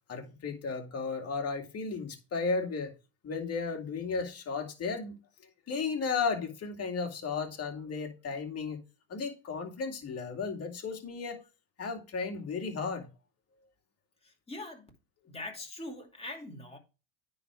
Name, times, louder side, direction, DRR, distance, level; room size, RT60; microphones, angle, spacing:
voice 1, 0.1-2.9 3.2-5.1 5.7-8.8 9.1-11.4 11.8-13.1, left 4 dB, 35° left, 2.4 m, -34 dB
voice 2, 14.5-14.9 15.3-16.8, left 2 dB, 15° left, 2.6 m, -42 dB
9.7 x 4.1 x 4.8 m
supercardioid pair, 100°, 41 cm